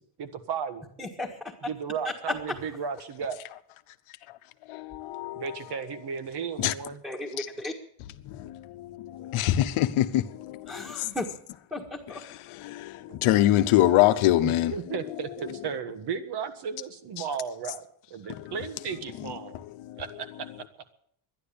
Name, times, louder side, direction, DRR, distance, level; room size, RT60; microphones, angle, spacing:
voice 1, 0.2-0.8 1.6-3.4 5.3-7.0 13.1-13.2 14.4-19.6 20.0-20.3, right 6 dB, 50° right, 1.6 m, -34 dB
voice 2, 1.0-1.5 7.0-7.7 10.7-11.3 11.7-12.2, left 2 dB, 5° right, 1.6 m, -35 dB
voice 3, 4.7-5.6 6.6-6.7 7.4-7.5 8.2-11.2 12.1-14.7 15.5-15.6 17.2-17.3 18.3-18.6 19.2-20.0, left 14 dB, 80° left, 1.0 m, -26 dB
12.0 x 11.0 x 8.6 m
cardioid pair, 155°, 49 cm